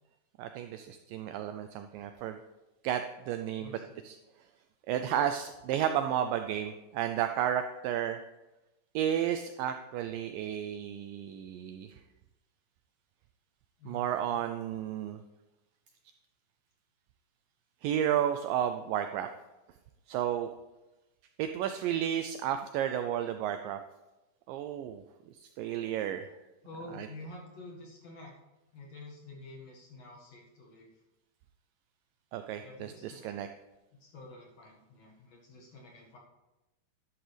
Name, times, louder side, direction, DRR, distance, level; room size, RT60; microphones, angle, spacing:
voice 1, 0.4-2.4 2.8-4.2 4.9-8.2 9.0-11.9 13.9-15.2 17.8-19.3 20.1-20.5 21.4-23.8 24.5-25.0 25.4-26.3 26.8-27.1 32.3-33.5, right 10 dB, 85° right, 8 dB, 2.0 m, -32 dB
voice 2, 3.6-4.0 13.8-14.4 26.6-28.3 28.7-30.9 32.6-33.4 34.0-36.2, left 2 dB, 50° left, -2 dB, 2.6 m, -49 dB
11.0 x 10.5 x 3.4 m, 1.0 s
omnidirectional pair, 4.4 m